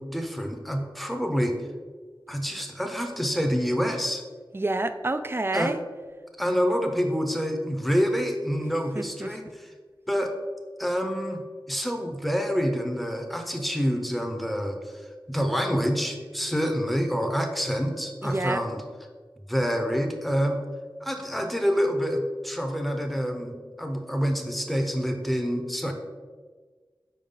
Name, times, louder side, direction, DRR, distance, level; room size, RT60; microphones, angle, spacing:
voice 1, 0.0-1.6 2.3-4.2 5.5-5.7 6.4-9.7 10.1-10.3 10.8-14.9 15.3-18.8 19.5-20.6 21.0-25.9, equal, ahead, 4 dB, 0.8 m, -27 dB
voice 2, 4.5-5.8 8.9-9.3 18.2-18.6, right 2 dB, 30° right, 10 dB, 0.4 m, -28 dB
5.6 x 4.6 x 3.8 m, 1.5 s
wide cardioid pair, 50°, 9 cm